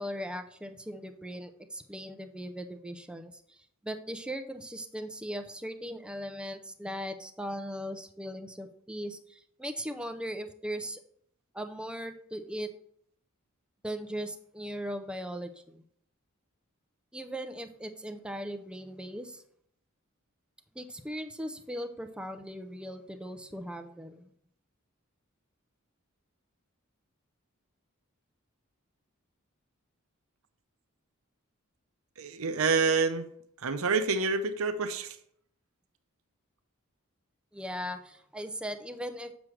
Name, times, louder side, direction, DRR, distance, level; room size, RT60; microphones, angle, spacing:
voice 1, 0.0-11.0 11.5-12.7 13.8-15.8 17.1-19.4 20.7-24.3 37.5-39.3, equal, 5° right, 7 dB, 0.6 m, -39 dB
voice 2, 32.2-33.3 33.6-35.2, right 4 dB, 70° right, 9 dB, 0.7 m, -27 dB
7.4 x 6.2 x 3.2 m, 0.66 s
head